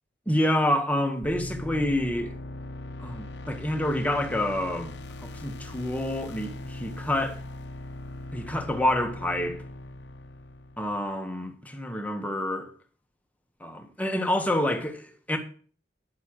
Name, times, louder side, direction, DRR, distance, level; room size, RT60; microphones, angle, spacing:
voice 1, 0.3-2.3 3.0-4.9 5.2-7.4 8.3-9.6 10.8-12.7 13.6-15.4, left 1 dB, 10° left, 1.6 m, -28 dB
sound 1, 1.2-11.0, left 1 dB, 75° left, 0.9 m, -39 dB
10.5 x 6.8 x 6.5 m
head